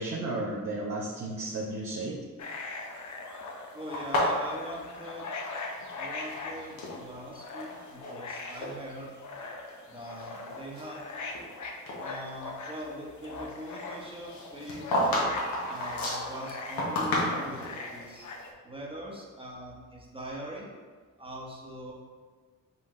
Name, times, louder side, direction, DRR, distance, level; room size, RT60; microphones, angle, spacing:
voice 1, 0.0-2.1, right 2 dB, 65° right, -6 dB, 0.9 m, -33 dB
sound 1, 2.4-18.5, left 3 dB, 60° left, 0.8 m, -41 dB
voice 2, 3.7-5.3 6.0-9.1 9.9-11.0 12.0-14.9 15.7-18.3 18.6-20.7 21.2-21.9, equal, 15° right, -2 dB, 1.2 m, -42 dB
sound 2, 3.9-5.9 6.2-7.0 7.6-8.2 8.5-8.7 9.4-9.5 10.0-11.5 11.9-12.0 14.3-17.7, left 1 dB, 85° left, 1.2 m, -31 dB
4.2 x 3.8 x 3.2 m, 1.5 s
cardioid pair, 65°, 34 cm